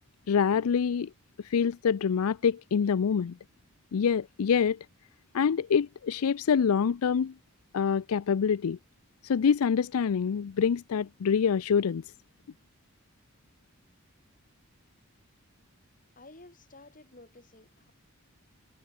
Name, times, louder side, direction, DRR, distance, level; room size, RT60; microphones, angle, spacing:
voice 1, 0.3-1.1 1.4-3.4 3.9-4.8 5.3-7.3 7.7-8.8 9.2-12.0, left 6 dB, 85° left, 0.4 m, -26 dB
voice 2, 16.1-17.9, left 2 dB, 40° left, 3.4 m, -53 dB
head